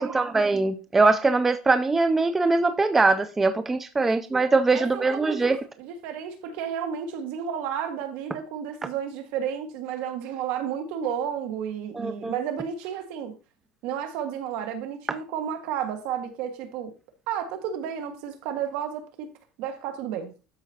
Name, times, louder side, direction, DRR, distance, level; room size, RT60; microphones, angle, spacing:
voice 1, 0.0-5.6 11.9-12.4, right 3 dB, 10° right, 0.4 m, -22 dB
voice 2, 4.7-13.4 13.8-16.9 17.3-19.3 19.6-20.3, right 8 dB, 60° right, 1.6 m, -32 dB
12.5 x 4.9 x 2.8 m
cardioid pair, 150°, 2 cm